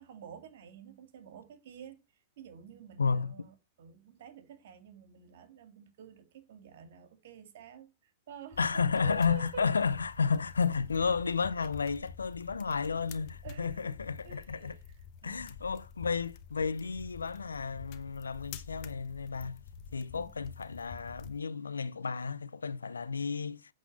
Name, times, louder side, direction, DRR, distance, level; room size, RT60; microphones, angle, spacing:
voice 1, 0.0-9.7 13.4-14.0 14.2-15.5 20.1-20.5, right 8 dB, 65° right, 2.0 m, -50 dB
voice 2, 3.0-3.3 8.6-14.7 15.2-19.6 19.9-23.6, left 5 dB, 90° left, 0.6 m, -32 dB
sound 1, 8.5-21.4, left 7 dB, 50° left, 1.1 m, -49 dB
8.3 x 4.2 x 7.1 m
hypercardioid pair, 105°, 0 cm